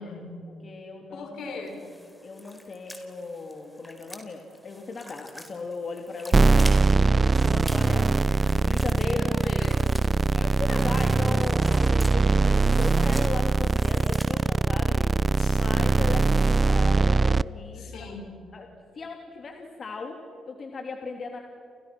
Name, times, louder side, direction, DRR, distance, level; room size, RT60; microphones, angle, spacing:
voice 1, 0.0-0.5 1.1-1.8 7.8-8.7 9.0-9.9 12.2-12.7 15.3-16.1 17.7-18.4, left 3 dB, 75° left, 3 dB, 6.6 m, -40 dB
voice 2, 0.6-1.6 2.2-8.2 8.6-9.4 10.3-18.1 18.5-18.7 18.9-21.4, left 3 dB, 45° left, 3 dB, 3.0 m, -37 dB
sound 1, 1.7-14.3, equal, 5° left, 4.1 m, -46 dB
sound 2, 6.3-17.4, right 4 dB, 30° right, 0.5 m, -21 dB
30.0 x 29.5 x 6.1 m, 2.5 s
cardioid pair, 75°, 0 cm